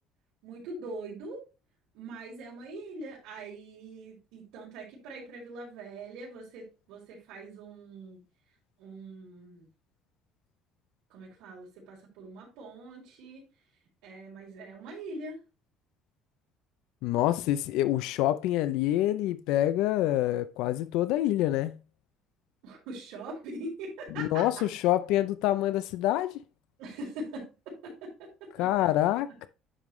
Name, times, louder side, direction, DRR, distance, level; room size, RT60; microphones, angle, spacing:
voice 1, 0.4-1.4 1.9-8.2 8.8-9.7 11.1-13.4 14.0-15.4 22.6-24.4 26.8-28.9, right 2 dB, 80° right, 4.4 m, -42 dB
voice 2, 17.0-21.8 24.1-26.4 28.6-29.5, left 14 dB, 80° left, 0.5 m, -26 dB
10.0 x 5.4 x 3.2 m
cardioid pair, 155°, 0 cm